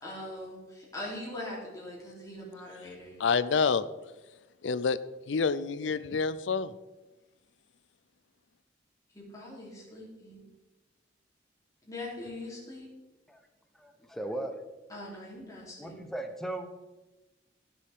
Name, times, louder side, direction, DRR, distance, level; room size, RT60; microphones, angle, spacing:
voice 1, 0.0-3.2 9.1-10.4 11.8-12.9 14.9-16.0, left 1 dB, 20° left, -5 dB, 3.4 m, -42 dB
voice 2, 3.2-3.8 4.6-5.0 5.3-6.7, left 5 dB, 85° left, 16 dB, 0.5 m, -27 dB
voice 3, 13.7-14.5 15.8-16.7, right 1 dB, ahead, 5 dB, 0.9 m, -37 dB
16.0 x 6.9 x 3.6 m, 1.1 s
head